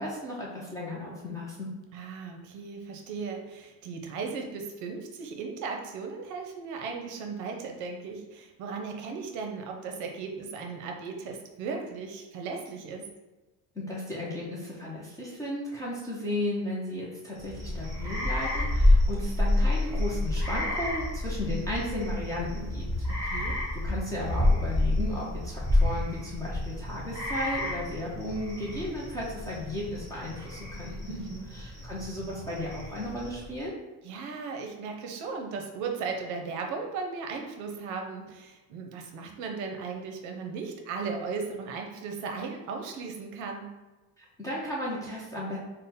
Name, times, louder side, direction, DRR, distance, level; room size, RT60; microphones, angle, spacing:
voice 1, 0.0-1.7 13.7-22.9 23.2-23.4 23.8-31.3 31.5-33.8 44.2-45.6, left 1 dB, 10° left, -6 dB, 0.4 m, -35 dB
voice 2, 1.9-13.0 23.1-23.6 31.1-31.5 34.0-43.7, right 5 dB, 55° right, 3 dB, 0.6 m, -36 dB
sound 1, 17.4-33.6, left 1 dB, 10° right, 0.9 m, -29 dB
3.6 x 2.1 x 4.1 m, 1.1 s
cardioid pair, 175°, 36 cm